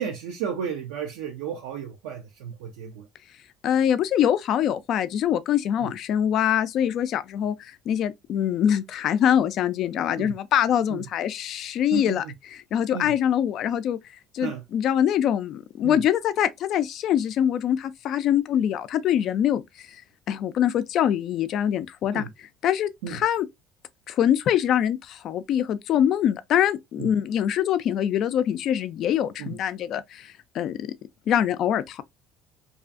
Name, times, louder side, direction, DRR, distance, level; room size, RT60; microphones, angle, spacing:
voice 1, 0.0-3.1 10.2-10.3 10.9-11.0 11.9-12.2 12.9-13.1 14.4-14.6 15.8-15.9 22.1-22.3 23.0-23.2 29.4-29.6, right 7 dB, 80° right, 0.4 m, -33 dB
voice 2, 3.6-14.0 14.3-19.9 20.3-22.3 22.6-23.5 24.1-30.9 31.3-32.0, left 10 dB, 60° left, 0.3 m, -24 dB
2.4 x 2.3 x 2.4 m
hypercardioid pair, 70°, 0 cm